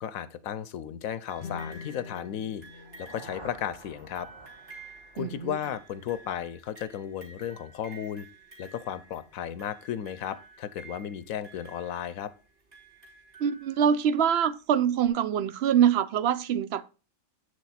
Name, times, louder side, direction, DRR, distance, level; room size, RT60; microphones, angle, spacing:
voice 1, 0.0-4.3 5.1-8.3 8.6-12.3, left 9 dB, 80° left, 1.1 m, -35 dB
sound 1, 1.3-14.1 15.1-15.2, right 3 dB, 45° right, 3.5 m, -52 dB
sound 2, 1.4-4.6, left 5 dB, 65° left, 0.7 m, -45 dB
sound 3, 2.6-6.6, right 2 dB, 25° right, 0.7 m, -51 dB
voice 2, 5.2-5.6 13.4-16.9, right 8 dB, 60° right, 0.7 m, -24 dB
8.3 x 6.4 x 4.1 m
omnidirectional pair, 1.4 m